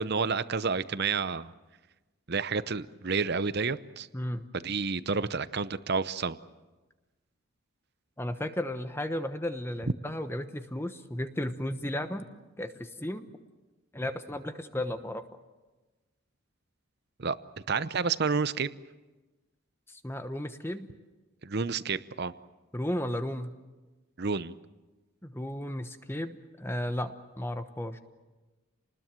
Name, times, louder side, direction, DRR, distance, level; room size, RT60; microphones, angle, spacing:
voice 1, 0.0-1.5 2.3-4.1 4.5-6.4 17.2-17.4 17.7-18.7 21.4-22.3 24.2-24.5, right 5 dB, 50° right, 14 dB, 0.8 m, -30 dB
voice 2, 4.1-4.5 8.2-12.2 12.6-13.3 13.9-15.2 19.9-20.9 22.7-23.5 25.2-28.0, left 1 dB, 10° left, 9 dB, 1.0 m, -34 dB
28.5 x 20.0 x 7.6 m, 1.2 s
head